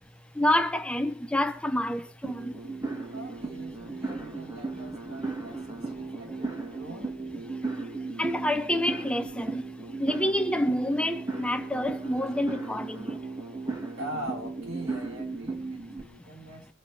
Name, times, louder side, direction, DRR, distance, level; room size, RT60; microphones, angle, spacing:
voice 1, 0.4-2.5 8.2-9.6 10.0-13.1, left 1 dB, 5° left, 0.7 m, -28 dB
sound 1, 2.2-16.0, right 3 dB, 20° right, 2.4 m, -36 dB
voice 2, 3.1-7.2 14.0-16.7, right 1 dB, 80° right, 3.8 m, -42 dB
23.5 x 8.0 x 4.3 m
head